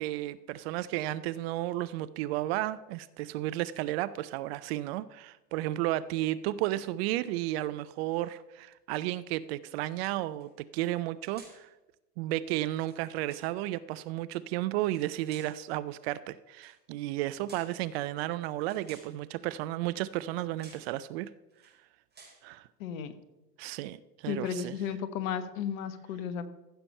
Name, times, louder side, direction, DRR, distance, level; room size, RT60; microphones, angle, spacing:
voice 1, 0.0-11.7 12.2-21.3 22.4-22.7 23.6-24.8, right 15 dB, 40° right, 16 dB, 0.4 m, -33 dB
sound 1, 10.0-10.5 11.3-11.7 12.6-13.5 14.7-15.6 16.5-16.8 17.4-17.8 18.6-19.2 20.1-20.3 20.6-20.9 21.5-21.8 22.1-22.5, right 3 dB, 20° right, 4.5 m, -55 dB
voice 2, 22.8-23.1 24.3-26.5, left 7 dB, 55° left, 12 dB, 1.2 m, -34 dB
14.5 x 6.9 x 5.4 m, 1.0 s
figure-of-eight pair, 85°, 48 cm